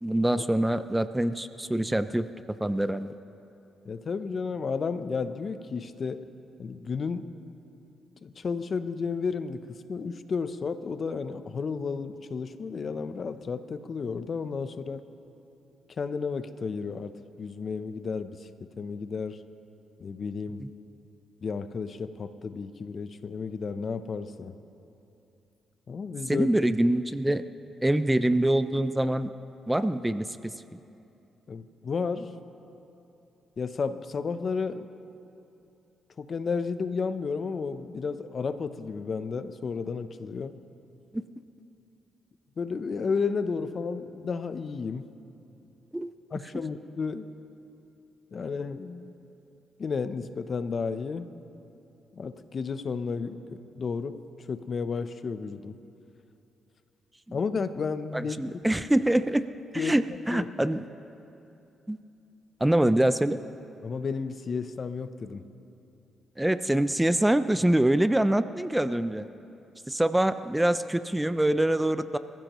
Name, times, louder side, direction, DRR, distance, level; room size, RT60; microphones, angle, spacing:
voice 1, 0.0-2.3 2.6-3.1 20.6-20.7 26.3-27.4 27.8-29.3 29.7-30.8 41.1-41.2 45.9-46.1 57.3-57.4 58.1-59.5 59.7-60.8 61.9-62.0 62.6-63.4 66.4-69.3 69.9-72.2, right 1 dB, 10° right, 12 dB, 0.5 m, -25 dB
voice 2, 3.8-6.3 6.6-7.3 8.2-15.0 16.0-18.5 18.8-19.4 20.0-20.6 21.4-24.5 25.9-26.5 31.5-32.3 33.6-34.9 36.2-40.5 42.6-45.0 46.3-47.3 48.3-49.1 49.8-51.3 52.1-55.7 57.3-58.4 59.8-60.0 60.3-60.5 63.8-65.4, left 5 dB, 50° left, 11 dB, 0.7 m, -32 dB
25.5 x 15.0 x 3.1 m, 2.8 s
cardioid pair, 70°, 0 cm